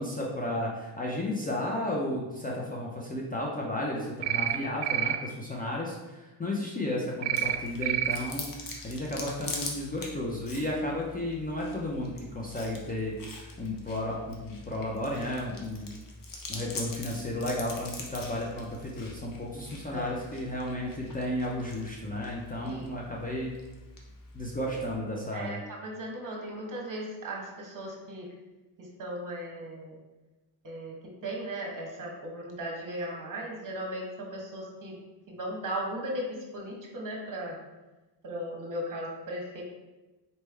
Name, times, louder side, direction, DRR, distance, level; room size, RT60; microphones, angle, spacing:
voice 1, 0.0-15.9 16.5-23.6 24.3-25.6, left 1 dB, 20° left, -3 dB, 0.6 m, -33 dB
sound 1, 4.2-4.6 4.8-5.2 7.2-7.6 7.8-8.2, right 12 dB, 65° right, 0.5 m, -27 dB
Chewing mastication, 7.3-24.9, left 3 dB, 45° left, 0.9 m, -44 dB
voice 2, 25.3-28.3 28.8-29.9 30.6-30.9 31.2-35.0 35.3-37.6 38.2-39.6, right 1 dB, 45° right, -1 dB, 1.2 m, -37 dB
4.2 x 3.4 x 3.3 m, 1.1 s
cardioid pair, 105°, 46 cm